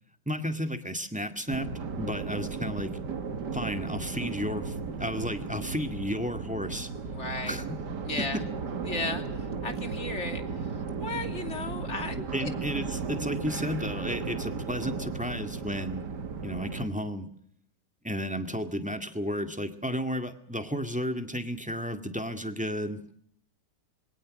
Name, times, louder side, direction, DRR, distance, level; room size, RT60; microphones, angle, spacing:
voice 1, 0.3-1.7 2.0-2.9 3.5-6.9 7.5-7.8 8.2-8.4 12.3-16.0 16.4-17.3 18.0-23.0, equal, 5° right, 7 dB, 1.9 m, -33 dB
sound 1, 1.5-16.9, right 5 dB, 75° right, 2.3 m, -35 dB
voice 2, 7.1-7.6 8.0-8.4 8.9-12.5, left 3 dB, 40° left, 6 dB, 3.1 m, -35 dB
26.5 x 23.0 x 6.4 m, 0.68 s
omnidirectional pair, 1.8 m